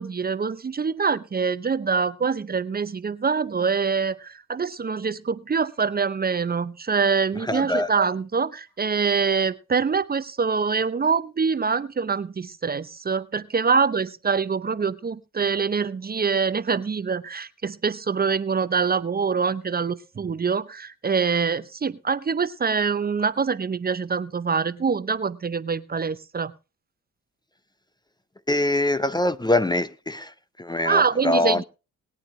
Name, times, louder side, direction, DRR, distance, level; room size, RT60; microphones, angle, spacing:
voice 1, 0.0-26.5 30.8-31.6, right 5 dB, 30° right, 0.7 m, -25 dB
voice 2, 7.4-7.9 28.5-30.3 30.6-31.6, left 2 dB, 15° left, 0.7 m, -23 dB
21.0 x 9.2 x 3.3 m
supercardioid pair, 60°, 32 cm